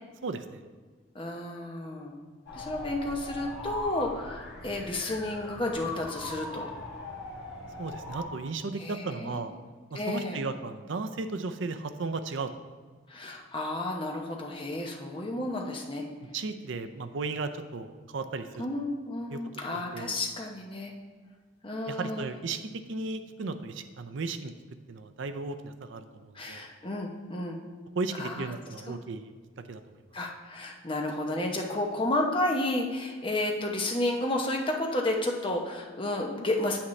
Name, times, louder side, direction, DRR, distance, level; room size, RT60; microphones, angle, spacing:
voice 1, 0.2-0.6 7.8-9.5 9.9-12.5 16.3-18.6 19.3-19.4 19.7-20.2 21.9-22.6 22.9-24.5 24.9-26.6 28.0-29.3 29.7-29.8, right 3 dB, 65° right, 8 dB, 0.5 m, -35 dB
voice 2, 1.1-2.2 2.5-6.7 8.8-9.4 9.9-10.4 13.1-16.0 18.6-20.9 21.6-22.3 26.3-27.6 28.2-28.5 28.9-29.0 30.1-36.8, left 1 dB, 25° left, 1 dB, 0.9 m, -31 dB
sound 1, 2.5-8.3, left 2 dB, 55° left, 1.8 m, -40 dB
8.6 x 8.3 x 3.2 m, 1.4 s
head